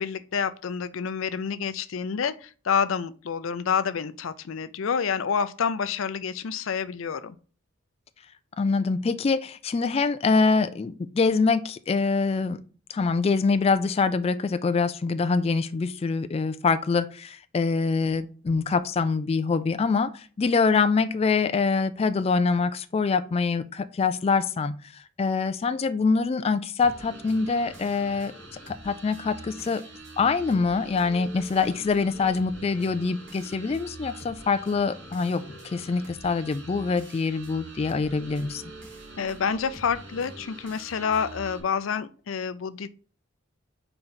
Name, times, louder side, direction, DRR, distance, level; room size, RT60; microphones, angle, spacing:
voice 1, 0.0-7.4 39.2-42.9, left 6 dB, 85° left, 0.5 m, -28 dB
voice 2, 8.6-12.6 12.9-28.3 28.7-29.8 30.2-38.6, left 4 dB, 30° left, 0.3 m, -25 dB
sound 1, 26.8-41.6, right 2 dB, 65° right, 1.7 m, -44 dB
4.4 x 4.0 x 5.6 m
head